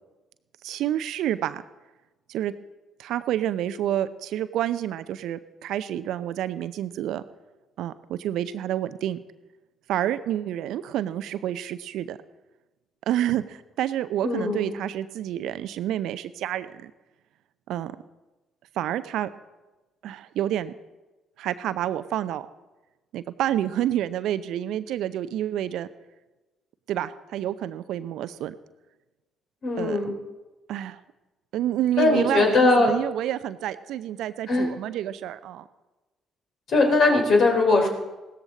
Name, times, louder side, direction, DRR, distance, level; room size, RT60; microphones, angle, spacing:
voice 1, 0.6-1.6 2.3-2.5 3.0-7.2 7.8-9.2 9.9-12.2 13.1-16.9 17.7-17.9 18.8-19.3 20.0-20.7 21.4-22.5 23.1-25.9 26.9-28.5 29.8-30.0 30.7-31.0 31.5-35.6, right 12 dB, 65° right, 14 dB, 0.6 m, -28 dB
voice 2, 14.2-14.7 29.6-30.1 32.0-32.9 34.5-34.7 36.7-37.9, left 3 dB, 55° left, 2 dB, 3.3 m, -20 dB
16.5 x 13.5 x 4.0 m, 1.1 s
hypercardioid pair, 45°, 0 cm